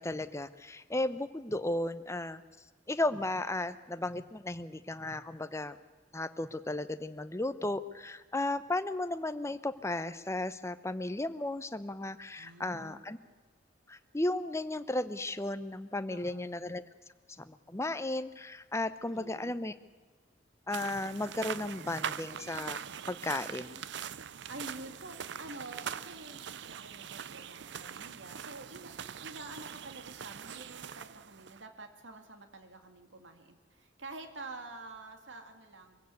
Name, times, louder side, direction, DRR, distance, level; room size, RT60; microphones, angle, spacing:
voice 1, 0.0-2.4 2.9-5.8 6.1-13.2 13.9-16.8 17.4-19.7 20.7-22.8 23.1-23.8, left 2 dB, 15° left, 12 dB, 0.8 m, -35 dB
voice 2, 12.3-13.1 16.1-16.6 19.1-19.7 24.5-36.0, right 2 dB, 85° right, 7 dB, 2.1 m, -48 dB
sound 1, 20.7-31.6, right 8 dB, 65° right, 0.6 m, -42 dB
23.0 x 16.5 x 8.3 m, 1.4 s
head